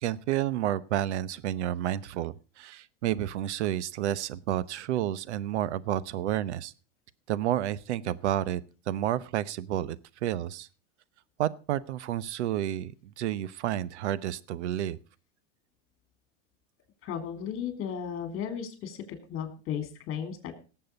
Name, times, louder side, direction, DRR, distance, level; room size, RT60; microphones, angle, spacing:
voice 1, 0.0-6.7 7.3-8.6 8.9-10.0 10.2-10.7 11.4-15.0, right 12 dB, 85° right, 18 dB, 0.9 m, -30 dB
voice 2, 17.0-19.0 19.3-20.6, left 8 dB, 40° left, 8 dB, 3.5 m, -35 dB
18.0 x 7.8 x 5.2 m, 0.35 s
supercardioid pair, 125°, 34 cm